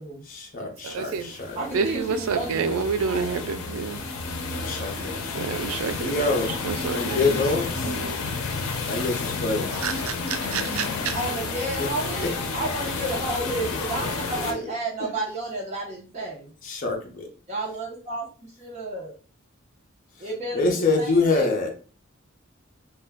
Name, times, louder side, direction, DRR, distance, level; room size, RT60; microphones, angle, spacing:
voice 1, 0.3-1.6 4.6-5.2 6.0-7.9 8.9-9.7 13.7-13.8 14.3-14.6 16.6-17.3 20.5-21.7, left 3 dB, 40° left, 0.5 m, -26 dB
voice 2, 0.8-1.3 1.7-4.0 4.9-5.0 5.3-7.4 7.8-8.2 9.8-11.2, right 5 dB, 85° right, 0.3 m, -29 dB
sound 1, 1.1-14.5, left 4 dB, 90° left, 0.5 m, -31 dB
voice 3, 1.6-3.4 11.1-16.5 17.5-19.1 20.2-21.6, right 2 dB, 35° right, 0.7 m, -32 dB
2.2 x 2.1 x 3.4 m
head